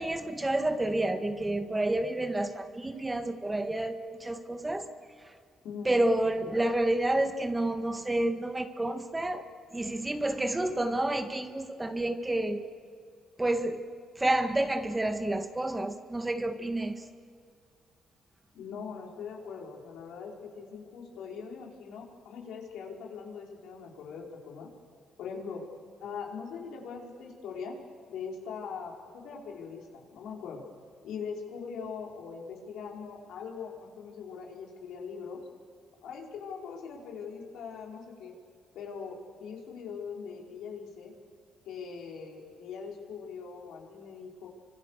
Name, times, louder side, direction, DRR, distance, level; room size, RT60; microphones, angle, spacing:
voice 1, 0.0-4.9 5.3-5.4 5.9-9.4 9.7-12.6 13.4-13.8 14.2-17.0, right 1 dB, 15° right, 7 dB, 1.7 m, -29 dB
voice 2, 5.6-6.0 18.5-24.7 25.2-25.6 26.0-27.8 28.1-30.6 31.0-35.4 36.0-38.3 38.7-41.1 41.6-44.5, left 6 dB, 85° left, -1 dB, 5.1 m, -41 dB
29.5 x 25.0 x 6.7 m, 2.1 s
cardioid pair, 90°, 0 cm